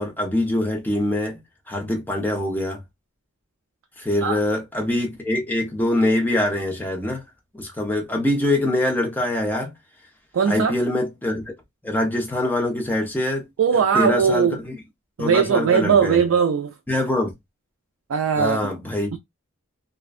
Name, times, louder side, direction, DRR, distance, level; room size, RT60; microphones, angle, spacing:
voice 1, 0.0-1.4 1.7-2.8 4.0-7.2 7.5-9.7 10.4-11.4 11.8-13.4 13.9-14.8 15.2-16.2 16.9-17.3 18.3-19.2, left 1 dB, 10° left, 0.5 m, -24 dB
voice 2, 10.3-10.7 13.6-14.6 15.2-16.7 18.1-18.7 19.1-19.2, right 6 dB, 65° right, 0.3 m, -19 dB
2.4 x 2.1 x 2.3 m
head